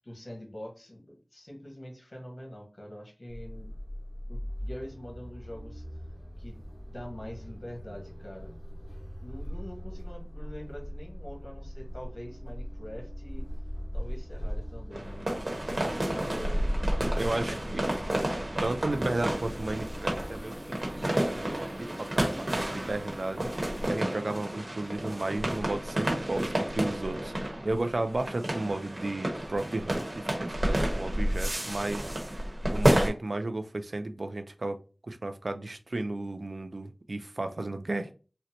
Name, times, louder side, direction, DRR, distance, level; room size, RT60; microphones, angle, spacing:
voice 1, 0.0-3.7 4.3-5.8 6.4-8.5 9.2-13.4 13.9-16.7 17.1-17.2 17.6-18.2, equal, 60° left, -1 dB, 1.3 m, -44 dB
sound 1, 3.3-20.4, equal, 15° left, 1.5 m, -40 dB
sound 2, 14.9-33.1, right 1 dB, 55° right, 1.0 m, -30 dB
voice 2, 17.2-17.8 18.6-38.1, right 2 dB, 85° right, 7 dB, 0.3 m, -34 dB
sound 3, 18.9-23.9, equal, ahead, 0.8 m, -45 dB
3.8 x 2.1 x 2.8 m, 0.36 s
wide cardioid pair, 45°, 0 cm